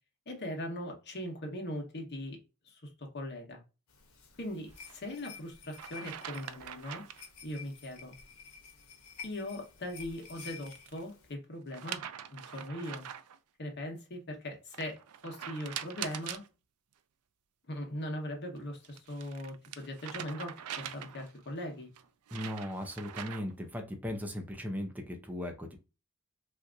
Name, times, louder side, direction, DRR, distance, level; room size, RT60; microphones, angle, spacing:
voice 1, 0.3-2.4 2.6-3.6 4.4-7.0 7.4-8.1 9.2-12.0 12.3-13.1 13.6-15.0 15.2-16.4 17.7-21.9, left 1 dB, 50° left, 2 dB, 1.1 m, -40 dB
sound 1, 3.9-11.3, left 6 dB, 90° left, 0.9 m, -51 dB
sound 2, 4.7-5.0 5.7-7.3 10.1-11.0 11.7-13.4 14.7-16.5 18.6-21.4 21.9-23.6, right 9 dB, 90° right, 0.4 m, -43 dB
voice 2, 22.3-25.8, left 1 dB, 5° right, 4 dB, 0.5 m, -38 dB
3.5 x 2.8 x 2.5 m, 0.30 s
head